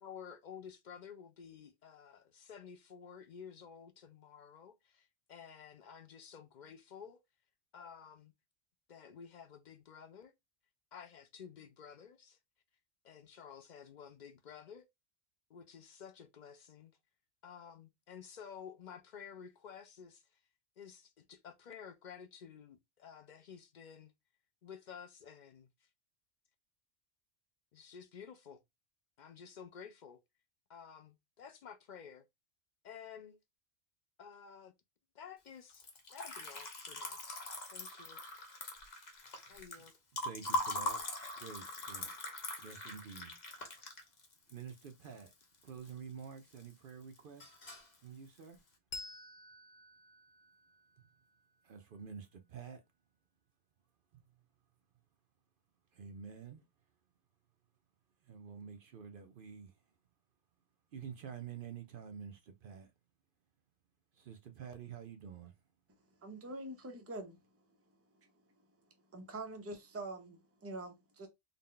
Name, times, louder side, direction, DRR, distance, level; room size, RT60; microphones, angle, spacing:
voice 1, 0.0-7.2 7.7-8.3 8.9-10.3 10.9-12.4 13.0-14.9 15.5-16.9 17.4-20.4 20.8-24.1 24.6-25.9 27.7-28.6 29.2-30.2 30.7-32.3 32.8-33.4 34.2-34.7 35.1-37.2 37.7-38.2 39.5-39.9, left 7 dB, 60° left, 0.5 m, -52 dB
Liquid, 35.7-45.9 46.2-46.9 47.2-47.9, left 1 dB, 40° left, 0.9 m, -42 dB
voice 2, 40.2-41.0 41.4-42.1 42.6-43.8 44.5-45.3 45.6-47.5 48.0-48.6 51.6-52.8 54.1-54.2 55.9-56.7 58.2-59.8 60.9-62.9 64.1-65.6, right 7 dB, 60° right, 0.6 m, -49 dB
Bell, 48.9-52.0, left 3 dB, 85° left, 1.0 m, -51 dB
voice 3, 66.2-67.4 69.1-71.3, right 2 dB, 15° right, 0.5 m, -45 dB
3.8 x 2.1 x 3.7 m
omnidirectional pair, 1.3 m